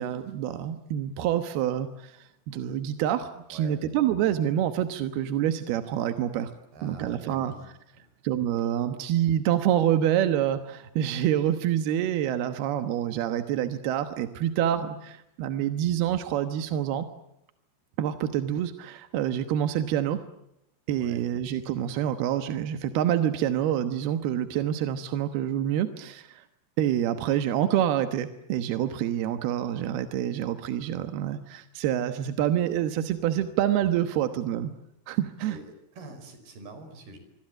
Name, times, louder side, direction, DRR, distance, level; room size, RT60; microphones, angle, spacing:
voice 1, 0.0-6.5 6.8-7.5 8.2-17.1 18.0-20.2 20.9-26.4 26.8-34.7 35.1-35.6, right 11 dB, 70° right, 9 dB, 2.7 m, -27 dB
voice 2, 3.5-3.8 6.7-7.7 8.0-8.1 21.0-21.2 35.5-35.7 35.9-37.2, right 3 dB, 55° right, 9 dB, 6.6 m, -44 dB
26.0 x 24.5 x 7.6 m, 0.83 s
omnidirectional pair, 5.6 m